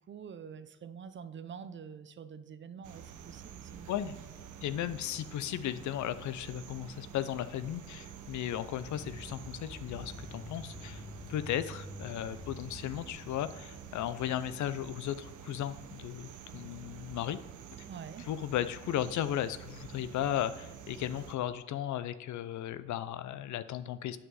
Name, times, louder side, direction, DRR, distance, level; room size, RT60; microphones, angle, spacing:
voice 1, 0.0-4.3 17.9-18.3, right 7 dB, 40° right, 13 dB, 0.6 m, -46 dB
sound 1, 2.8-21.4, right 8 dB, 80° right, 0.8 m, -49 dB
voice 2, 4.6-11.0 11.3-17.4 18.3-24.2, left 11 dB, 70° left, 14 dB, 0.6 m, -35 dB
sound 2, 8.8-14.3, left 2 dB, 20° left, 1.0 m, -48 dB
8.0 x 6.0 x 4.8 m, 0.97 s
cardioid pair, 90°, 30 cm